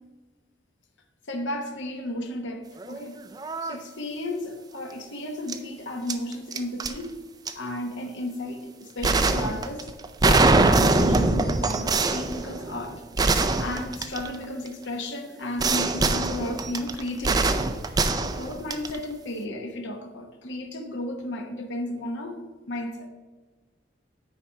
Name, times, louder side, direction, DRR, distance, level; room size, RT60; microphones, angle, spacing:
voice 1, 1.3-3.2 3.6-7.2 7.5-9.9 10.2-13.0 13.6-17.5 17.9-22.4 22.7-23.1, left 1 dB, 70° left, 4 dB, 0.9 m, -33 dB
sound 1, 2.8-3.0 3.3-3.8 5.5-5.6 6.1-6.9 7.5-7.6 9.0-14.7 15.6-19.0, right 3 dB, 20° right, 0.4 m, -23 dB
9.3 x 4.2 x 5.6 m, 1.3 s
head